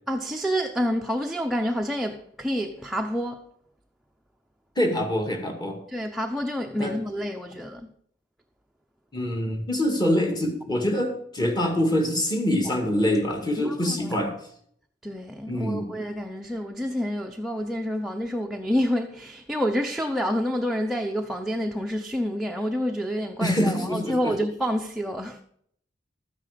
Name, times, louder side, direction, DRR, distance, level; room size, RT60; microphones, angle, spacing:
voice 1, 0.1-3.5 5.9-7.9 13.7-14.0 15.0-25.4, equal, ahead, 0.6 m, -28 dB
voice 2, 4.8-5.8 6.8-6.9 9.1-14.3 15.5-15.9 23.4-24.3, left 1 dB, 25° left, 2.2 m, -25 dB
12.5 x 9.5 x 5.1 m
head